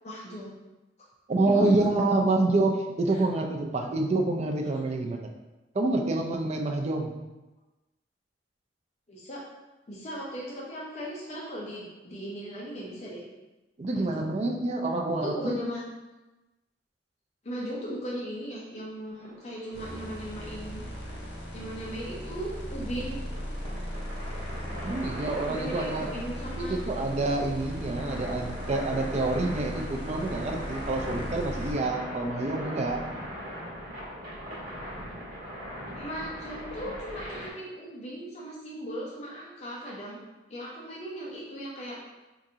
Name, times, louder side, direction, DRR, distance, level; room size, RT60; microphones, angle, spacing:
voice 1, 0.0-0.5 1.5-1.6 3.1-3.2 9.1-9.4 9.9-13.2 13.9-14.3 15.2-15.8 17.4-20.8 21.5-23.2 25.5-26.8 35.9-40.2 40.5-42.0, equal, 40° left, -5 dB, 0.6 m, -37 dB
voice 2, 1.3-5.3 5.7-7.1 13.8-15.6 24.8-26.1 26.6-33.0, right 2 dB, 35° right, 2 dB, 0.4 m, -27 dB
sound 1, 19.2-37.5, equal, 50° right, 1.4 m, -40 dB
sound 2, 19.7-31.7, equal, 70° left, 1.2 m, -38 dB
4.7 x 2.5 x 2.7 m, 1.1 s
head